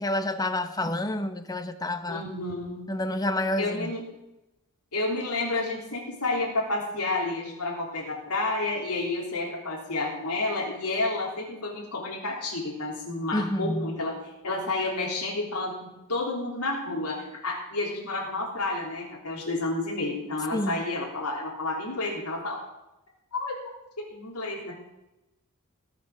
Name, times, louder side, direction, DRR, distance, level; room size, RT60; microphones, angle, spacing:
voice 1, 0.0-2.2 2.9-3.9 13.3-13.9 20.5-20.8, left 1 dB, 15° left, 9 dB, 0.9 m, -29 dB
voice 2, 2.1-3.0 3.6-4.1 4.9-14.1 14.4-22.6 23.3-23.5 24.0-24.7, left 2 dB, 90° left, -4 dB, 3.5 m, -30 dB
19.5 x 6.6 x 6.2 m, 0.95 s
head